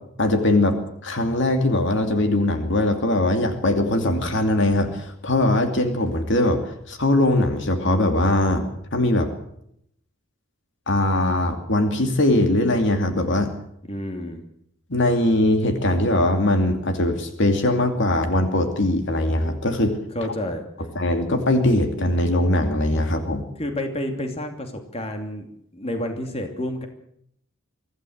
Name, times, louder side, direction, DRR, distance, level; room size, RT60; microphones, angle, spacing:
voice 1, 0.2-0.8 1.0-8.6 8.9-9.3 10.9-13.5 14.9-20.0 20.9-23.4, left 1 dB, 60° left, 6 dB, 2.7 m, -21 dB
voice 2, 13.9-14.4 20.1-20.9 23.6-25.4 25.7-26.9, left 1 dB, 30° left, 5 dB, 2.9 m, -30 dB
24.5 x 16.0 x 8.0 m, 0.72 s
head